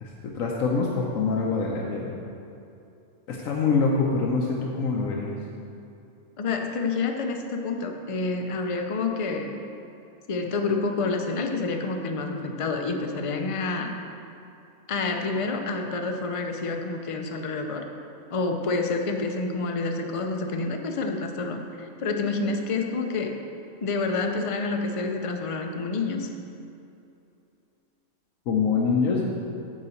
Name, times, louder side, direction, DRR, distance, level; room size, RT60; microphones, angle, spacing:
voice 1, 0.0-2.1 3.3-5.3 28.5-29.2, left 4 dB, 85° left, -2 dB, 1.2 m, -25 dB
voice 2, 6.4-9.6 10.3-13.9 14.9-17.9 18.3-23.4 23.8-26.3, left 3 dB, 55° left, 4 dB, 0.3 m, -28 dB
9.1 x 4.0 x 7.0 m, 2.7 s
omnidirectional pair, 1.4 m